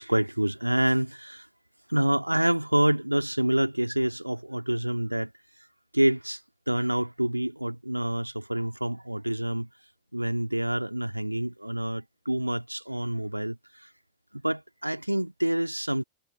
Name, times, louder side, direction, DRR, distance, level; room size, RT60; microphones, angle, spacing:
voice 1, 0.0-1.5 1.9-5.3 5.9-6.4 6.7-9.7 10.1-13.6 14.3-16.0, right 1 dB, 85° right, 2.3 m, -27 dB
figure-of-eight pair, 90°, 0 cm